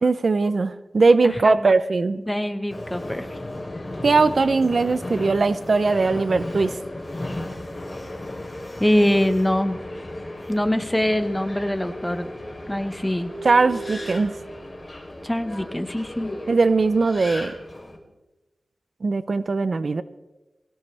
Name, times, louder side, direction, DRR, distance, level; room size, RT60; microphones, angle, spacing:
voice 1, 0.0-2.2 4.0-6.8 13.4-14.3 16.5-17.5 19.0-20.0, right 3 dB, 55° right, 13 dB, 0.6 m, -20 dB
voice 2, 1.2-1.7 2.2-3.3 6.1-6.2 8.8-9.8 10.5-12.3 12.7-13.3 15.2-16.4, left 1 dB, 10° left, 9 dB, 1.3 m, -23 dB
Subway metro underground, 2.7-18.0, left 1 dB, 25° left, 3.6 m, -35 dB
23.0 x 16.5 x 3.4 m, 1.1 s
wide cardioid pair, 85°, 0 cm